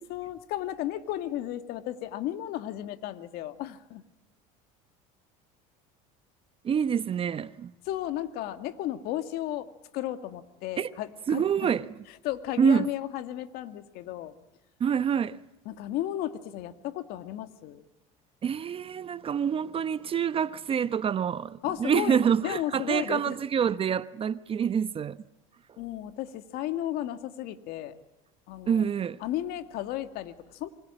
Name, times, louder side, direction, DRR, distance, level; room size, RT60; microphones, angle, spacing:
voice 1, 0.0-4.0 7.8-11.7 12.2-14.3 15.7-17.9 21.6-23.4 25.8-28.0 28.5-28.9 29.2-30.7, left 13 dB, 65° left, 2.1 m, -34 dB
voice 2, 6.6-7.7 10.8-10.9 11.3-11.9 12.6-12.9 14.8-15.4 18.4-25.2 28.7-29.2, right 7 dB, 35° right, 0.9 m, -26 dB
27.0 x 25.0 x 8.9 m
supercardioid pair, 110°, 17 cm